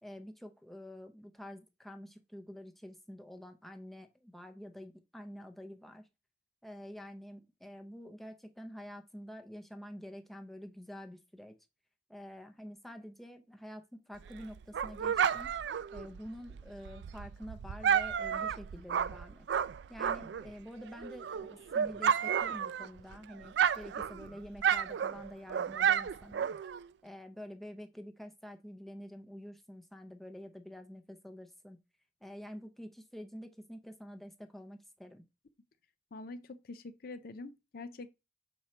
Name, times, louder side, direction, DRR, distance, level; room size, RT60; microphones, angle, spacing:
voice 1, 0.0-6.1 6.6-11.5 12.1-15.5 15.9-19.5 19.9-26.5 27.0-31.8 32.2-35.3, equal, ahead, 0.6 m, -48 dB
Dog, 14.2-20.5 20.9-23.1 23.4-26.9, right 8 dB, 65° right, 0.3 m, -32 dB
voice 2, 36.1-38.1, left 3 dB, 50° left, 0.4 m, -45 dB
6.2 x 4.3 x 4.3 m
head